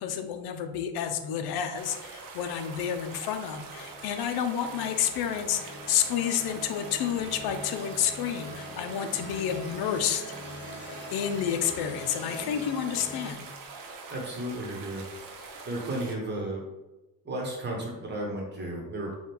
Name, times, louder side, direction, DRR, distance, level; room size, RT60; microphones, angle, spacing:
voice 1, 0.0-10.2 11.1-13.4, left 9 dB, 80° left, 7 dB, 0.5 m, -30 dB
sound 1, 1.7-16.1, right 4 dB, 60° right, 0.7 m, -44 dB
sound 2, 3.4-13.3, left 1 dB, 30° left, 1.0 m, -43 dB
voice 2, 14.1-15.0 15.7-16.6 17.2-19.1, right 1 dB, 30° right, -1 dB, 1.0 m, -33 dB
3.4 x 2.3 x 4.3 m, 1.0 s
cardioid pair, 150°, 37 cm